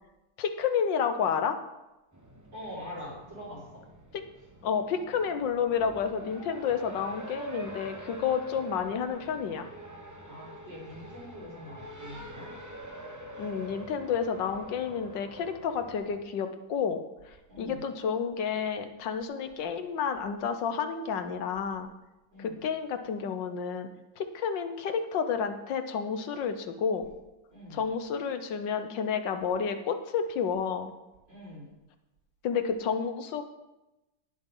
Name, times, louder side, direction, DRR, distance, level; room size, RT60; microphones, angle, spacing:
voice 1, 0.4-1.6 4.1-4.2 4.6-9.7 13.4-17.0 17.6-21.9 22.4-23.9 24.2-27.1 27.7-30.9 32.4-33.4, left 6 dB, 90° left, 8 dB, 1.7 m, -30 dB
Race car auto racing, 2.1-16.2, right 1 dB, 15° right, 0.9 m, -45 dB
voice 2, 2.5-3.8 4.4-4.5 10.3-12.5 17.5-17.8 22.3-22.6 27.5-27.8 31.3-31.7, left 1 dB, 90° right, -5 dB, 6.0 m, -44 dB
18.5 x 7.5 x 3.9 m, 0.99 s
omnidirectional pair, 1.9 m